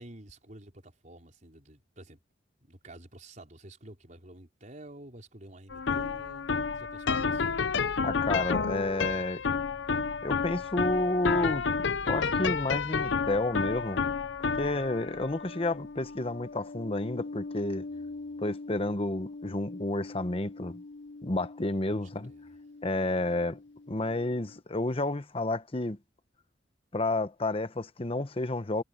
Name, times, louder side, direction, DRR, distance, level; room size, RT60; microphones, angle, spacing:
voice 1, 0.0-2.2 2.6-6.5 6.7-7.5 14.7-15.0 17.9-18.4 21.9-22.5, right 1 dB, 45° right, 4.7 m, -50 dB
sound 1, 5.7-22.9, left 5 dB, 85° left, 0.7 m, -32 dB
voice 2, 8.0-9.4 10.2-14.0 14.4-17.9 18.4-20.8 21.2-22.3 22.8-23.6 23.9-26.0 26.9-28.8, left 2 dB, 30° left, 1.0 m, -31 dB
head